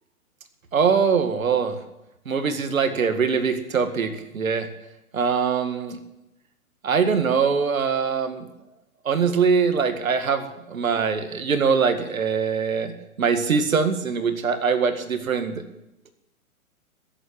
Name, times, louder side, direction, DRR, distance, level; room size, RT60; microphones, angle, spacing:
voice 1, 0.7-1.8 2.3-4.7 5.1-6.0 6.8-8.5 9.0-15.6, right 6 dB, 70° right, 8 dB, 2.0 m, -23 dB
14.5 x 8.3 x 9.4 m, 0.90 s
figure-of-eight pair, 125°, 43 cm